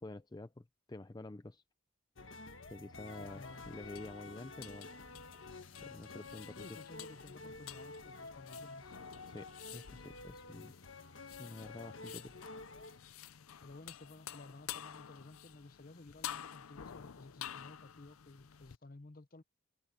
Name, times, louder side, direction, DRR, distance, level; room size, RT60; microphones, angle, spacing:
voice 1, 0.0-1.6 2.7-4.9 5.8-6.6 9.3-10.7 11.4-12.4, left 2 dB, 20° left, 0.4 m, -49 dB
sound 1, 2.2-13.0, left 3 dB, 65° left, 1.5 m, -50 dB
sound 2, 3.1-18.8, left 10 dB, 90° left, 0.6 m, -51 dB
voice 2, 3.1-3.7 6.5-9.0 13.6-19.4, left 2 dB, 45° left, 0.8 m, -54 dB
head